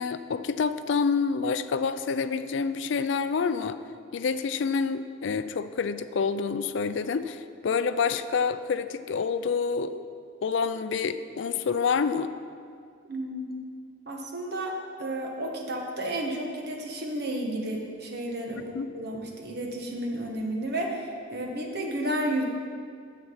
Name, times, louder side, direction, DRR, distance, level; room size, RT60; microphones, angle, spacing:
voice 1, 0.0-3.8 4.1-10.0 10.4-12.3 18.7-18.9, left 5 dB, 65° left, 12 dB, 0.4 m, -27 dB
voice 2, 13.1-13.6 14.1-22.4, right 1 dB, 50° right, 1 dB, 1.3 m, -32 dB
9.3 x 7.4 x 5.6 m, 2.2 s
head